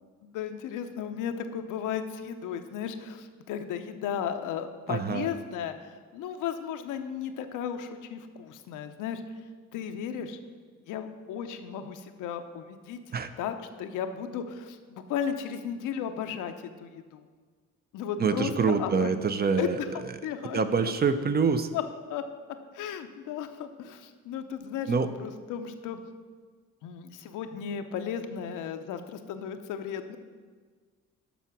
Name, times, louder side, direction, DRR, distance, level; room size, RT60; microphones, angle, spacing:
voice 1, 0.2-9.2 9.7-10.4 10.9-13.0 13.4-16.5 16.8-17.2 17.9-19.1 19.6-20.6 21.7-21.8 22.1-22.2 22.7-26.0 26.8-30.2, left 8 dB, 90° left, 7 dB, 0.7 m, -35 dB
voice 2, 4.9-5.3 13.1-13.3 18.2-19.8 20.5-21.7 24.9-25.1, right 5 dB, 30° right, 10 dB, 0.5 m, -25 dB
7.1 x 5.9 x 5.9 m, 1.5 s
cardioid pair, 90°, 30 cm